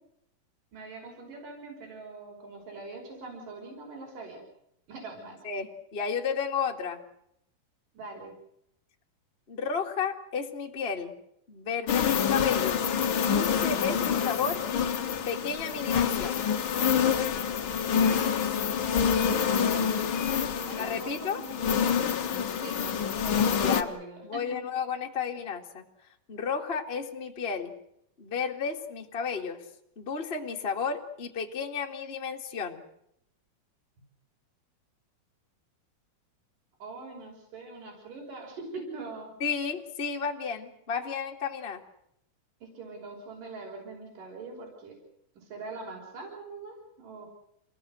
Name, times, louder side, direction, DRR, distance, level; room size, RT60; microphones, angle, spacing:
voice 1, 0.7-4.4 4.9-5.4 7.9-8.3 19.3-19.8 20.5-21.6 22.6-23.1 23.6-24.4 36.8-39.4 42.6-44.9 45.4-47.3, right 3 dB, 55° right, -1 dB, 7.3 m, -43 dB
voice 2, 5.4-7.0 9.5-11.1 11.5-12.8 13.1-15.0 15.2-16.4 20.8-21.4 23.6-23.9 24.2-25.8 26.3-27.7 28.2-29.6 29.9-32.8 39.4-41.8, left 6 dB, 25° left, 1 dB, 1.4 m, -32 dB
sound 1, 11.9-23.8, left 7 dB, 65° left, 1.2 m, -27 dB
29.0 x 16.5 x 7.9 m, 0.76 s
omnidirectional pair, 4.5 m